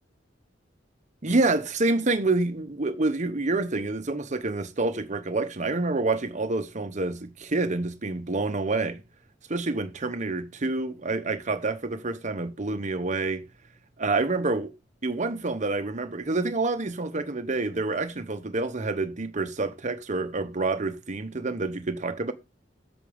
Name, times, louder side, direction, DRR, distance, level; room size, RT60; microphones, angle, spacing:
voice 1, 1.2-9.0 9.5-13.4 14.0-14.7 15.0-22.3, right 3 dB, 40° right, 1.0 m, -27 dB
8.2 x 6.1 x 5.4 m
head